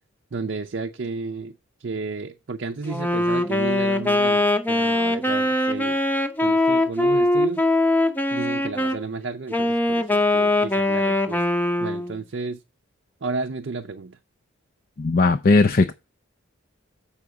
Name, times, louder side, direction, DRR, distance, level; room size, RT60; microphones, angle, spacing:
voice 1, 0.3-6.0 6.4-7.6 8.3-11.4 11.8-12.6 13.2-14.2, right 4 dB, 55° right, 0.5 m, -32 dB
Wind instrument woodwind instrument, 2.8-9.0 9.5-12.1, left 1 dB, 10° left, 0.7 m, -21 dB
voice 2, 15.0-15.9, left 3 dB, 45° left, 0.4 m, -18 dB
7.1 x 4.8 x 6.6 m
head